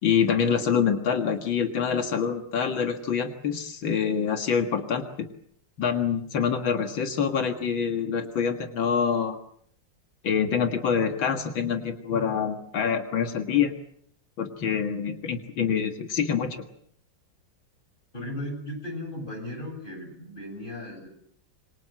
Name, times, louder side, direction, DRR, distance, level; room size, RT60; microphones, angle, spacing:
voice 1, 0.0-5.3 5.8-9.4 10.2-13.7 14.4-16.7, left 7 dB, 80° left, 6 dB, 2.5 m, -26 dB
voice 2, 18.1-21.1, left 1 dB, 25° left, 4 dB, 8.0 m, -36 dB
27.0 x 24.5 x 7.7 m, 0.66 s
omnidirectional pair, 2.1 m